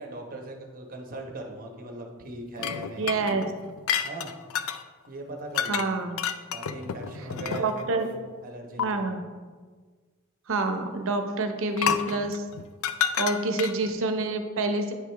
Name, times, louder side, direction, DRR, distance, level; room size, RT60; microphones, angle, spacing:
voice 1, 0.0-3.2 4.0-4.3 5.1-6.0 6.5-8.1 8.4-9.1, right 2 dB, 40° right, 2 dB, 1.0 m, -39 dB
sound 1, 2.6-4.8 5.5-5.9 6.2-7.9 8.8-8.9 11.8-13.9, left 8 dB, 70° left, 0.4 m, -30 dB
voice 2, 3.0-3.5 5.7-6.2 7.5-8.1 8.8-9.2 10.5-12.5 13.2-14.9, right 3 dB, 65° right, 6 dB, 0.7 m, -27 dB
9.4 x 4.8 x 3.4 m, 1.5 s
head